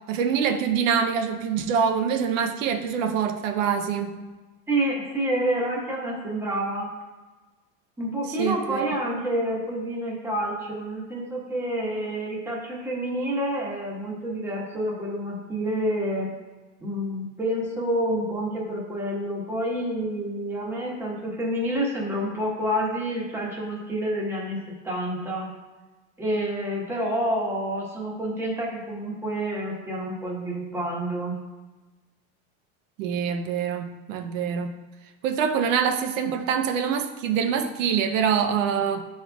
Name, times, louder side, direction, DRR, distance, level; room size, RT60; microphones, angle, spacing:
voice 1, 0.1-4.1 8.4-8.9 33.0-34.7 35.2-39.0, right 7 dB, 90° right, 6 dB, 0.7 m, -25 dB
voice 2, 4.7-6.9 8.0-16.3 16.8-25.5 26.2-31.4, right 1 dB, 5° right, -4 dB, 1.2 m, -28 dB
11.5 x 4.3 x 2.3 m, 1.2 s
supercardioid pair, 155°, 38 cm